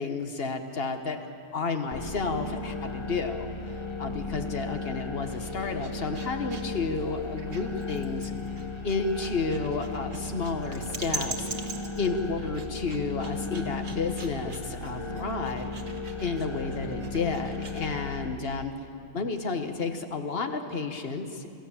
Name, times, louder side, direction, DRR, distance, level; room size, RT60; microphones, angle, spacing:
voice 1, 0.0-3.5 4.0-8.3 8.8-11.5 12.0-15.7 16.2-18.7 19.1-21.5, left 4 dB, 50° left, 6 dB, 1.5 m, -31 dB
sound 1, 1.9-18.3, left 3 dB, 25° left, 1.1 m, -36 dB
sound 2, 5.2-17.9, right 4 dB, 40° right, 1.5 m, -43 dB
27.0 x 14.5 x 7.3 m, 2.6 s
omnidirectional pair, 1.3 m